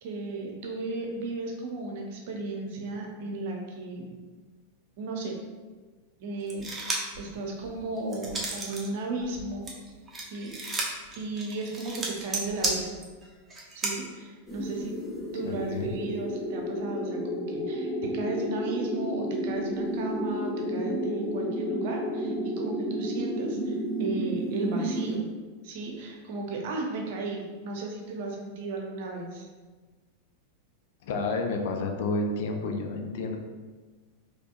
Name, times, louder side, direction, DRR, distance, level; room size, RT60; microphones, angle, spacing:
voice 1, 0.0-4.1 5.0-5.4 6.2-9.7 10.2-13.0 13.7-15.0 15.3-25.3 25.6-29.5, right 2 dB, 50° right, 1 dB, 0.8 m, -35 dB
sound 1, 6.5-7.2 7.6-8.9 9.2-13.9, right 2 dB, 15° right, 0.8 m, -33 dB
sound 2, 14.5-25.2, equal, 10° left, 1.1 m, -31 dB
voice 2, 15.4-15.9 31.0-33.4, left 3 dB, 55° left, 3 dB, 0.5 m, -30 dB
5.0 x 3.0 x 2.4 m, 1.4 s
figure-of-eight pair, 90°, 0 cm